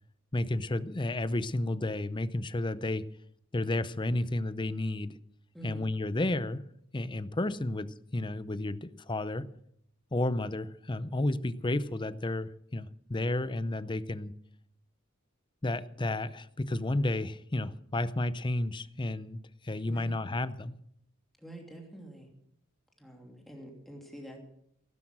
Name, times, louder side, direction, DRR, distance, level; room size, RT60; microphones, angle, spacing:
voice 1, 0.3-3.1 3.5-5.2 5.6-6.7 6.9-9.5 10.1-14.3 15.6-20.8, left 2 dB, 25° left, 15 dB, 0.6 m, -32 dB
voice 2, 5.5-5.9 19.8-20.2 21.4-22.3 23.0-24.4, right 1 dB, ahead, 0 dB, 2.8 m, -46 dB
16.0 x 12.0 x 6.2 m, 0.73 s
head